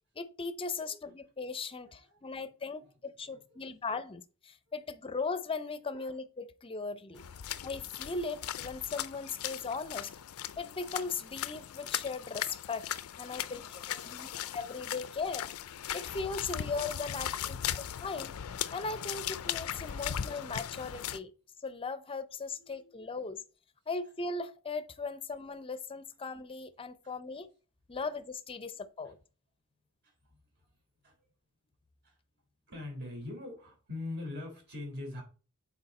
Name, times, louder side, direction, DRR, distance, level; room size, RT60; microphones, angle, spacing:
voice 1, 0.2-7.2 7.6-10.1 10.6-15.5 15.9-18.3 18.7-21.3 21.6-23.4 23.9-27.5 27.9-29.2, left 4 dB, 25° left, 0.6 m, -38 dB
voice 2, 1.8-2.3 2.6-2.7 3.3-3.9 6.0-6.1 7.1-7.6 13.3-14.5 17.3-17.9 22.6-22.9 27.0-27.1 30.0-30.4 31.0-31.2 32.0-32.1 32.7-35.2, left 2 dB, 50° right, 3.3 m, -45 dB
sound 1, 7.1-21.2, left 10 dB, 75° left, 0.4 m, -38 dB
6.9 x 4.4 x 4.2 m
head